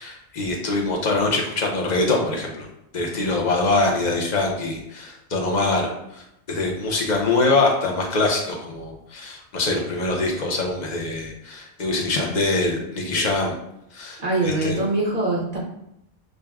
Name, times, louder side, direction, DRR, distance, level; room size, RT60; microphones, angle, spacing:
voice 1, 0.0-2.7 2.9-13.6 13.9-14.8, left 2 dB, 45° left, 0 dB, 0.8 m, -24 dB
voice 2, 14.2-15.6, right 2 dB, 40° right, -3 dB, 0.9 m, -23 dB
6.3 x 2.2 x 2.3 m, 0.80 s
omnidirectional pair, 1.1 m